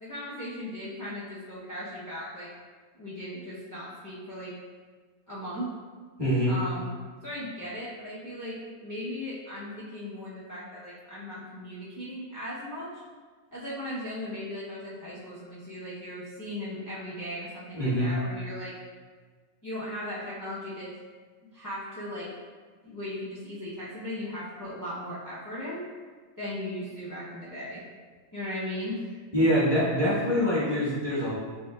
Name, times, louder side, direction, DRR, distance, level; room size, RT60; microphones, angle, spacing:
voice 1, 0.0-2.5 2.9-4.5 5.3-5.7 6.5-6.9 7.2-13.0 13.5-18.7 19.6-20.9 21.4-22.3 22.8-25.8 26.4-27.8 28.3-29.0, left 1 dB, 25° left, -10 dB, 0.5 m, -37 dB
voice 2, 6.2-6.5 17.7-18.1 29.3-31.3, equal, 20° right, -10 dB, 1.2 m, -24 dB
6.7 x 2.7 x 2.3 m, 1.5 s
omnidirectional pair, 1.4 m